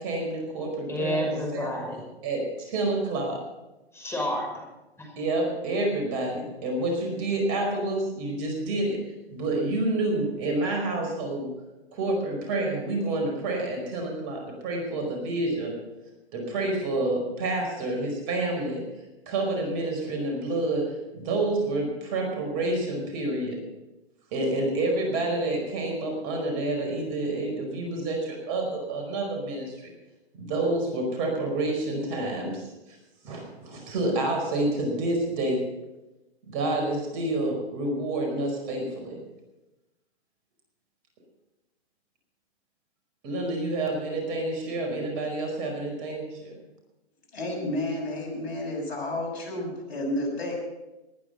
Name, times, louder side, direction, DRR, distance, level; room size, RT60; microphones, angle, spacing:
voice 1, 0.0-1.7 2.2-3.4 5.2-9.0 9.3-11.5 11.9-15.7 16.3-18.8 19.3-23.6 24.3-29.9 30.4-32.7 33.2-35.6 36.5-39.2 43.2-46.6, right 2 dB, 40° right, 2 dB, 5.1 m, -28 dB
voice 2, 0.9-2.0 3.9-4.7 5.0-5.1, equal, 10° left, 0 dB, 5.6 m, -30 dB
voice 3, 47.3-50.5, left 1 dB, 70° left, 1 dB, 7.1 m, -31 dB
19.5 x 10.0 x 5.7 m, 1.0 s
hypercardioid pair, 120°, 32 cm